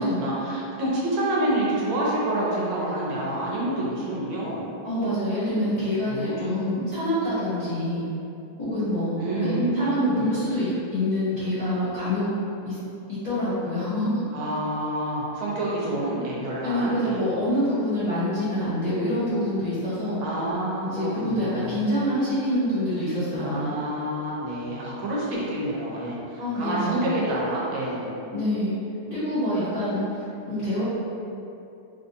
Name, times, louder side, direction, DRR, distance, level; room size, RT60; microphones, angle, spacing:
voice 1, 0.0-4.7 6.1-6.6 9.2-10.3 14.3-17.3 20.2-21.9 23.4-28.1, right 1 dB, 85° right, -5 dB, 1.6 m, -28 dB
voice 2, 4.8-8.0 8.6-12.3 12.6-12.8 13.2-14.2 16.6-20.2 20.9-23.7 26.4-27.2 28.3-28.8 29.1-30.8, left 1 dB, 25° left, -15 dB, 0.8 m, -26 dB
4.0 x 2.6 x 2.5 m, 2.7 s
omnidirectional pair, 2.2 m